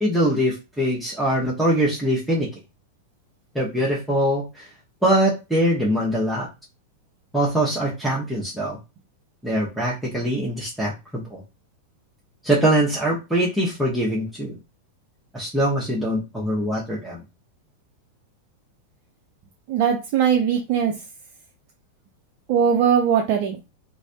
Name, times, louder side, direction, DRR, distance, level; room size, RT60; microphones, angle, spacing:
voice 1, 0.0-2.5 3.5-4.7 5.0-6.5 7.3-8.8 9.4-11.4 12.4-14.6 15.3-17.2, right 1 dB, 5° right, -6 dB, 0.9 m, -23 dB
voice 2, 19.7-20.9 22.5-23.6, right 8 dB, 45° right, 2 dB, 0.5 m, -20 dB
3.1 x 2.6 x 2.7 m, 0.27 s
figure-of-eight pair, 90°, 0 cm